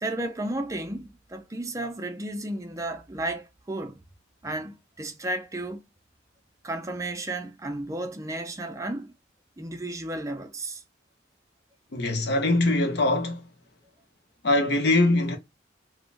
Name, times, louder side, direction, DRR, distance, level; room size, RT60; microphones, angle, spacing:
voice 1, 0.0-4.0 4.4-5.8 6.6-9.1 9.6-10.8, right 1 dB, 15° right, 0.4 m, -33 dB
voice 2, 11.9-13.5 14.4-15.4, left 2 dB, 60° left, 0.7 m, -22 dB
3.2 x 2.1 x 2.4 m
head